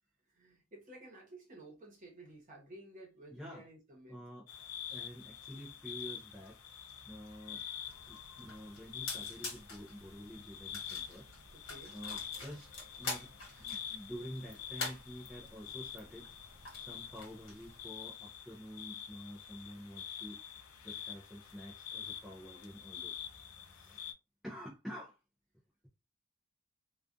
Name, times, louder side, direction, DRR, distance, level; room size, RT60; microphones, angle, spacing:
voice 1, 0.3-4.2 11.5-12.0 13.5-13.7, right 1 dB, 35° right, 1.0 m, -54 dB
voice 2, 3.3-3.6 4.1-4.5 4.9-6.6 7.1-7.6 8.1-11.3 11.9-13.3 13.6-16.4 16.8-20.4 20.8-23.2 23.6-24.1 24.4-25.2, equal, ahead, 0.4 m, -48 dB
sound 1, 4.5-24.1, left 9 dB, 85° left, 0.5 m, -47 dB
sound 2, 7.8-17.8, left 3 dB, 65° left, 1.3 m, -47 dB
2.4 x 2.3 x 2.4 m
head